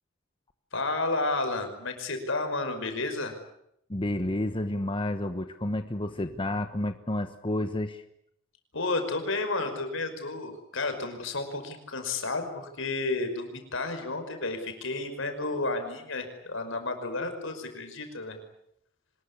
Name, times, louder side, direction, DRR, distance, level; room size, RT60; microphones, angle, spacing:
voice 1, 0.7-3.4 8.7-18.4, left 3 dB, 65° left, 7 dB, 5.5 m, -31 dB
voice 2, 3.9-8.0, left 1 dB, 25° left, 8 dB, 1.2 m, -30 dB
25.0 x 21.0 x 9.8 m, 0.75 s
head